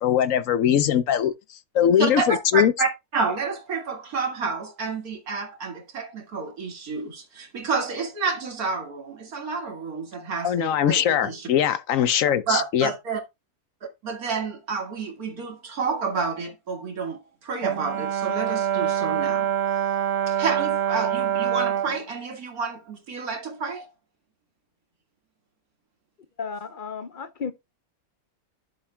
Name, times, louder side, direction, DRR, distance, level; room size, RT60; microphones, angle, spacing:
voice 1, 0.0-1.3 1.7-2.7 10.4-12.9, left 9 dB, 70° left, 1.0 m, -21 dB
voice 2, 2.0-11.5 12.5-13.2 14.0-19.5 20.3-23.9, right 4 dB, 85° right, 2.4 m, -29 dB
Brass instrument, 17.6-22.0, right 10 dB, 55° right, 1.0 m, -25 dB
voice 3, 26.4-27.5, left 5 dB, 45° left, 0.7 m, -33 dB
11.0 x 7.3 x 2.2 m
omnidirectional pair, 1.5 m